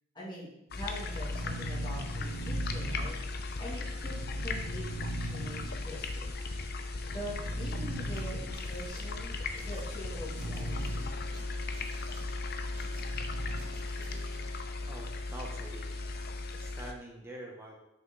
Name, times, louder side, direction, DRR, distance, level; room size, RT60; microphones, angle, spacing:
voice 1, 0.1-3.2 3.6-4.2 4.4-6.5 7.1-11.4, left 1 dB, 25° left, -6 dB, 2.2 m, -44 dB
sound 1, 0.7-16.9, left 3 dB, 55° left, 0.6 m, -37 dB
sound 2, 0.7-3.5 4.0-6.1 7.0-8.8 10.0-11.0 11.3-11.4 13.0-13.8, right 1 dB, 65° right, 0.7 m, -39 dB
sound 3, 8.1-14.5, right 2 dB, 45° right, 1.2 m, -54 dB
voice 2, 14.8-16.0 16.5-17.8, right 1 dB, 10° right, -2 dB, 0.8 m, -45 dB
6.3 x 5.4 x 3.8 m, 0.81 s
head